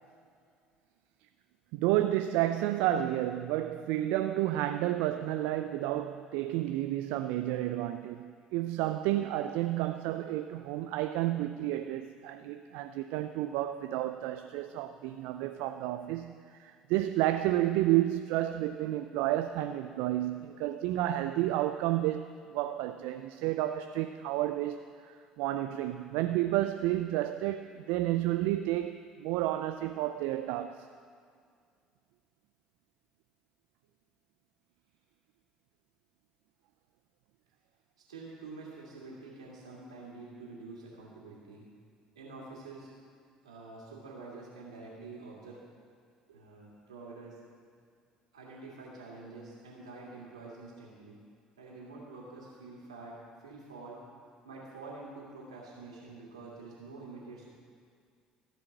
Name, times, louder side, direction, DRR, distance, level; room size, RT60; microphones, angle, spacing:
voice 1, 1.7-16.3 16.6-24.8 25.0-30.9, right 14 dB, 70° right, 8 dB, 0.4 m, -31 dB
voice 2, 38.1-41.6 42.1-42.9 43.4-45.6 46.3-47.4 48.3-51.2 51.6-54.0 54.4-57.5, right 3 dB, 90° right, -4 dB, 2.5 m, -47 dB
15.0 x 5.2 x 7.2 m, 2.2 s
hypercardioid pair, 60°, 3 cm